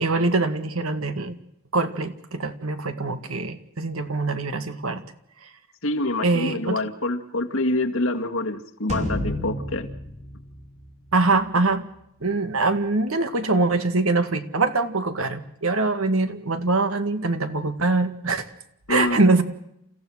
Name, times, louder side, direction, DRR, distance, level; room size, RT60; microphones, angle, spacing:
voice 1, 0.0-1.4 1.7-5.0 6.2-6.8 11.1-11.8 12.2-18.5 18.9-19.4, right 3 dB, 85° right, 9 dB, 2.0 m, -23 dB
voice 2, 5.8-9.9 18.9-19.2, left 2 dB, 75° left, 4 dB, 2.0 m, -26 dB
sound 1, 8.9-11.4, equal, 30° right, 5.1 m, -31 dB
29.5 x 15.5 x 6.4 m, 0.77 s
head